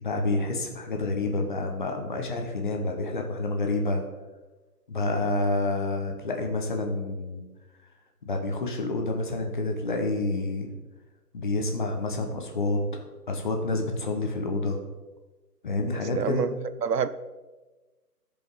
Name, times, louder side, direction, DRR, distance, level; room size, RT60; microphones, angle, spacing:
voice 1, 0.0-4.0 4.9-7.4 8.2-10.7 11.3-14.8 15.6-16.4, left 2 dB, 30° left, 3 dB, 1.0 m, -28 dB
voice 2, 15.9-16.5 16.8-17.1, right 7 dB, 80° right, 13 dB, 0.7 m, -27 dB
14.0 x 5.2 x 3.9 m, 1.2 s
hypercardioid pair, 165°, 47 cm